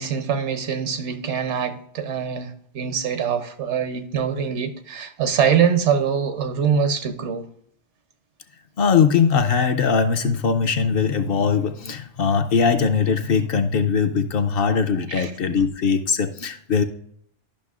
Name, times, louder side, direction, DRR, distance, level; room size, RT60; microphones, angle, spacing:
voice 1, 0.0-7.4 15.1-15.3, right 7 dB, 80° right, 1.1 m, -23 dB
voice 2, 8.8-16.8, left 6 dB, 60° left, 0.7 m, -20 dB
11.5 x 5.8 x 2.4 m
omnidirectional pair, 1.2 m